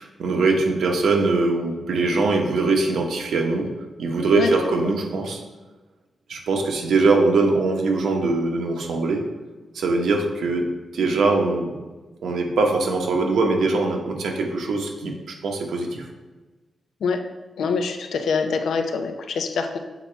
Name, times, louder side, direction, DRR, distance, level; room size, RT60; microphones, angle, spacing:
voice 1, 0.0-3.7 4.0-5.4 6.3-9.2 9.7-10.7 10.9-11.8 12.2-16.1, right 3 dB, 90° right, 2 dB, 1.0 m, -22 dB
voice 2, 17.6-19.8, left 5 dB, 90° left, 6 dB, 0.6 m, -24 dB
7.1 x 4.2 x 4.5 m, 1.2 s
wide cardioid pair, 145°, 0 cm